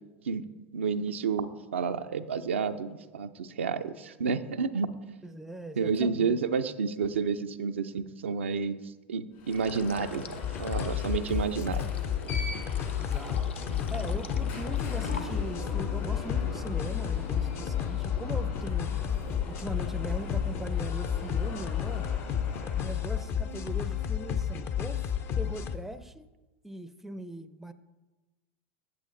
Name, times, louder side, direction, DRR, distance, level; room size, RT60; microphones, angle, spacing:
voice 1, 0.7-5.2 5.8-8.8 9.1-11.9, right 5 dB, 80° right, 8 dB, 0.4 m, -30 dB
voice 2, 5.2-6.4 13.0-13.6 13.9-18.9 19.5-22.1 22.7-25.0 25.4-26.3 26.6-27.7, right 1 dB, 5° right, 12 dB, 0.5 m, -40 dB
Alarm, 9.3-23.3, left 4 dB, 60° left, 3.2 m, -41 dB
sound 1, 9.5-15.7, left 5 dB, 80° left, 0.6 m, -48 dB
sound 2, 10.4-25.8, left 8 dB, 40° left, 0.6 m, -31 dB
8.4 x 8.1 x 3.8 m, 1.2 s
figure-of-eight pair, 85°, 6 cm